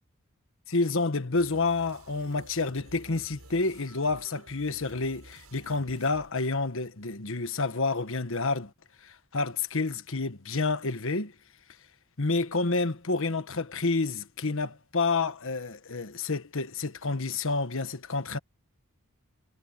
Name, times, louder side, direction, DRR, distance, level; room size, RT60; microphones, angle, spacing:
voice 1, 0.7-8.7 9.0-11.3 12.2-18.4, left 3 dB, 65° left, 1.4 m, -29 dB
sound 1, 1.3-7.1, right 1 dB, 85° right, 7.9 m, -52 dB
head